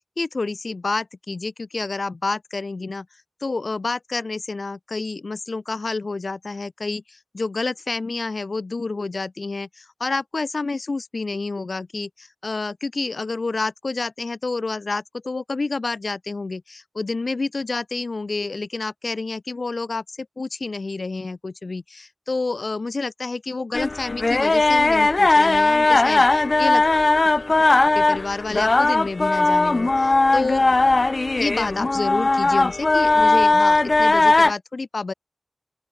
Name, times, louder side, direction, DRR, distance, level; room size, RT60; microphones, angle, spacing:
voice 1, 0.2-3.1 3.4-30.6 31.4-35.1, left 3 dB, 75° left, 3.1 m, -29 dB
sound 1, 23.7-34.5, left 2 dB, 60° left, 1.7 m, -18 dB
open air
wide cardioid pair, 55°, 0 cm